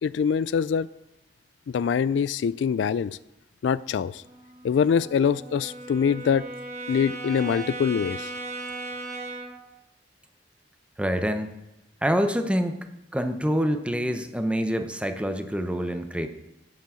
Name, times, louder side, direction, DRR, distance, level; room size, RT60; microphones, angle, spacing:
voice 1, 0.0-0.9 1.7-3.2 3.6-4.2 4.6-6.5 6.9-8.3, left 7 dB, 70° left, 18 dB, 0.3 m, -24 dB
Brass instrument, 4.1-9.7, right 2 dB, 40° right, 2.0 m, -37 dB
voice 2, 11.0-11.5 12.0-12.9 13.1-16.3, equal, 5° right, 7 dB, 0.8 m, -26 dB
9.2 x 7.4 x 7.6 m, 0.91 s
head